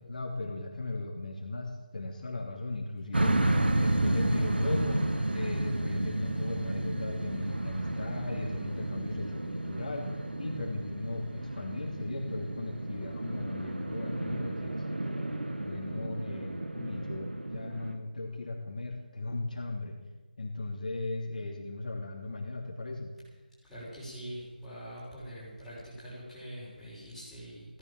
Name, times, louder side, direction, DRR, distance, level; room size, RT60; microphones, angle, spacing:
voice 1, 0.0-3.4 3.8-5.0 5.3-10.1 10.4-14.8 15.6-19.9 20.4-23.1, left 2 dB, 50° left, 0 dB, 2.7 m, -37 dB
sound 1, 3.1-17.9, right 1 dB, 90° right, 2.3 m, -32 dB
voice 2, 23.6-27.8, equal, ahead, -14 dB, 6.1 m, -44 dB
16.5 x 11.0 x 7.3 m, 1.3 s
figure-of-eight pair, 165°, 5 cm